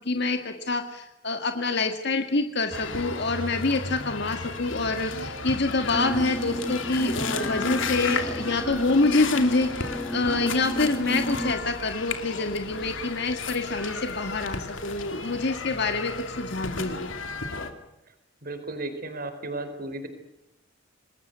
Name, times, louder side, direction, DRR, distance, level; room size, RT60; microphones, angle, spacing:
voice 1, 0.1-17.1, left 3 dB, 60° left, 6 dB, 1.9 m, -26 dB
sound 1, 2.7-17.7, left 4 dB, 90° left, 2.7 m, -34 dB
sound 2, 5.9-11.5, equal, 5° left, 1.1 m, -33 dB
voice 2, 18.4-20.1, right 2 dB, 50° right, 9 dB, 4.2 m, -34 dB
27.0 x 20.5 x 8.1 m, 0.85 s
head